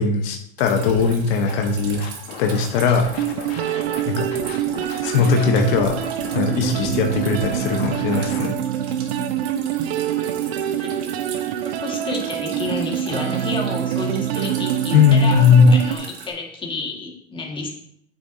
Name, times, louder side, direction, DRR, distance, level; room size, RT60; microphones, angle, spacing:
voice 1, 0.0-2.0 2.4-3.0 4.1-4.3 5.0-6.0 6.3-8.5 14.9-15.7, left 5 dB, 75° left, 3 dB, 1.0 m, -18 dB
Drip, 0.6-16.3, right 6 dB, 65° right, 1.5 m, -40 dB
Scratching (performance technique), 0.8-1.1 1.5-4.0 4.3-8.5, left 6 dB, 90° left, 1.2 m, -36 dB
sound 1, 3.2-16.0, right 10 dB, 80° right, 0.7 m, -25 dB
voice 2, 11.8-17.7, left 3 dB, 15° left, 0 dB, 1.7 m, -30 dB
8.7 x 6.4 x 2.7 m, 0.68 s
supercardioid pair, 115°, 30 cm